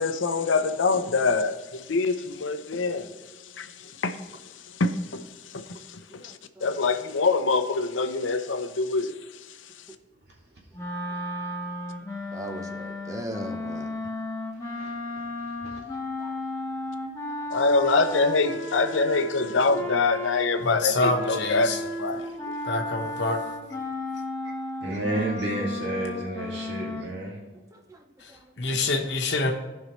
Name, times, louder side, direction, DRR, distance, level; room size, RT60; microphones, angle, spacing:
voice 1, 0.0-3.1 3.6-4.2 4.8-5.2 5.5-9.2 17.5-22.5, left 3 dB, 85° left, 9 dB, 0.7 m, -25 dB
sound 1, 10.7-20.8 21.1-27.0, left 1 dB, 15° left, 1.1 m, -34 dB
voice 2, 12.3-13.9 16.2-16.3 17.3-17.6 27.7-28.0 28.3-28.4, right 1 dB, 15° right, 5 dB, 0.7 m, -39 dB
voice 3, 15.4-15.8 24.8-27.4, right 1 dB, 60° right, -3 dB, 2.2 m, -31 dB
voice 4, 20.6-21.8 22.6-23.4 28.2-28.3 28.6-29.5, left 3 dB, 65° left, 3 dB, 1.1 m, -26 dB
15.0 x 5.5 x 3.1 m, 1.1 s
head